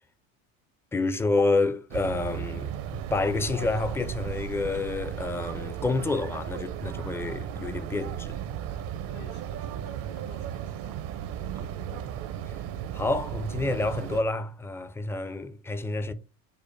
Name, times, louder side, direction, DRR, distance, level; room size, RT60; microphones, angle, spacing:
voice 1, 0.9-2.7 3.1-8.4 11.6-12.2 12.9-16.1, left 3 dB, 5° left, 0.4 m, -29 dB
sound 1, 1.9-14.2, right 10 dB, 55° right, 0.6 m, -35 dB
voice 2, 9.1-11.3, left 5 dB, 80° left, 1.0 m, -53 dB
5.3 x 2.1 x 4.5 m
supercardioid pair, 85°, 40 cm